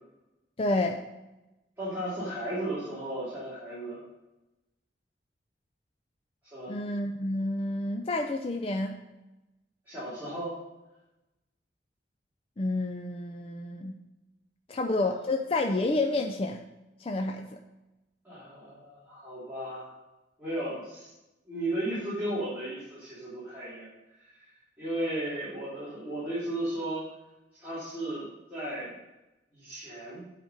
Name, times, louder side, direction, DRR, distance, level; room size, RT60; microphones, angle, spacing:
voice 1, 0.6-1.0 6.7-9.0 12.6-14.0 14.7-16.6 17.0-17.6, left 2 dB, 30° left, 3 dB, 0.4 m, -29 dB
voice 2, 1.8-4.0 6.5-6.7 9.8-10.5 15.0-15.1 18.2-19.9 20.4-21.1 21.5-23.9 24.2-24.3 24.8-27.1 27.6-28.2 28.5-28.9 29.5-30.3, right 1 dB, 10° right, -12 dB, 3.0 m, -35 dB
8.0 x 5.1 x 6.5 m, 1.0 s
head